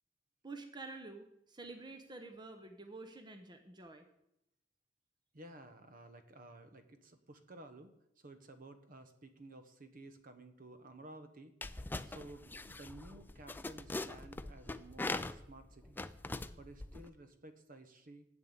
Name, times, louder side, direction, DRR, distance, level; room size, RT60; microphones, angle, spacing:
voice 1, 0.4-4.1, right 3 dB, 25° right, 5 dB, 0.9 m, -49 dB
voice 2, 5.3-11.6 12.0-16.0 16.6-18.3, right 2 dB, 50° right, 9 dB, 1.0 m, -54 dB
sound 1, 11.6-17.1, left 2 dB, 10° left, 0.4 m, -42 dB
8.1 x 7.3 x 8.7 m, 0.81 s
head